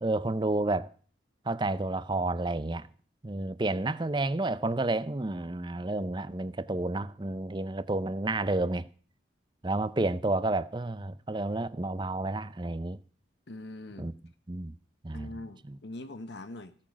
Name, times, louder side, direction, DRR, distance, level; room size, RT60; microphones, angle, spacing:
voice 1, 0.0-0.9 1.5-2.9 3.2-8.9 9.6-13.0 14.0-14.1 14.5-14.7 15.0-15.3 15.7-15.8, right 2 dB, 25° right, 0.6 m, -30 dB
voice 2, 13.5-14.1 15.1-16.7, left 2 dB, 65° left, 1.1 m, -42 dB
16.0 x 8.7 x 6.1 m
head